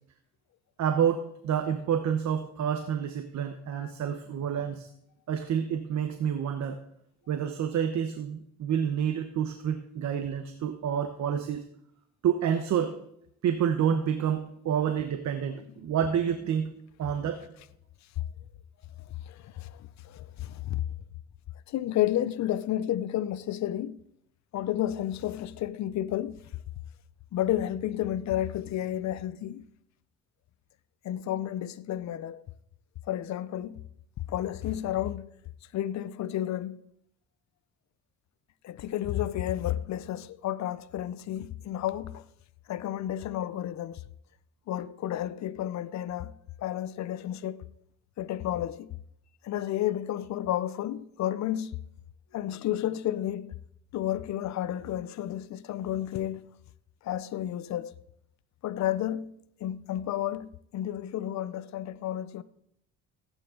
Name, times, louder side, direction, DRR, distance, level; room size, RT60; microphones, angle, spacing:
voice 1, 0.8-4.9 5.3-6.8 7.3-11.6 12.2-12.9 13.4-16.7 17.0-17.5, right 8 dB, 65° right, 1.0 m, -28 dB
voice 2, 19.3-20.8 21.7-24.0 24.5-26.4 27.3-29.6 31.0-32.4 33.1-33.8 34.3-35.3 35.7-36.8 38.6-42.2 42.7-44.0 44.7-46.3 46.6-47.6 48.2-48.9 49.4-51.8 52.3-53.5 53.9-56.5 57.0-57.9 58.6-59.3 59.6-62.4, left 12 dB, 65° left, 0.7 m, -31 dB
15.5 x 9.1 x 3.8 m
cardioid pair, 90°, 30 cm